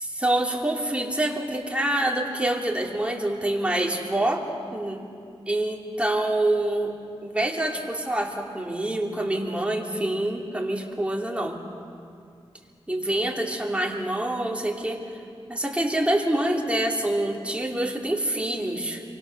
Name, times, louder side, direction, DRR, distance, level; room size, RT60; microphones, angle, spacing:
voice 1, 0.2-4.4 4.7-5.0 5.5-6.9 7.2-11.6 12.9-15.0 15.5-19.0, right 1 dB, 10° right, 0 dB, 3.0 m, -26 dB
28.0 x 24.0 x 6.8 m, 2.5 s
wide cardioid pair, 100°, 11 cm